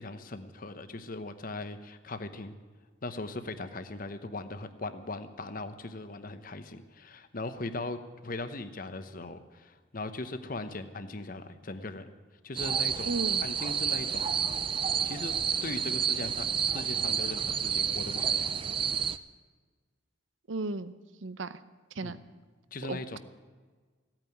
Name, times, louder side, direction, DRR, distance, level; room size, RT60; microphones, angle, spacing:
voice 1, 0.0-2.5 3.0-8.0 8.2-12.1 12.4-14.2 15.0-15.3 15.6-18.5 22.0-22.2 22.7-23.2, left 2 dB, 45° left, 10 dB, 1.0 m, -39 dB
sound 1, 12.6-19.2, right 7 dB, 25° right, 0.4 m, -30 dB
voice 2, 13.1-13.4 20.5-20.9 21.2-21.6 21.9-22.2 22.9-23.2, right 3 dB, 80° right, 13 dB, 0.7 m, -34 dB
16.0 x 9.0 x 9.3 m, 1.4 s
head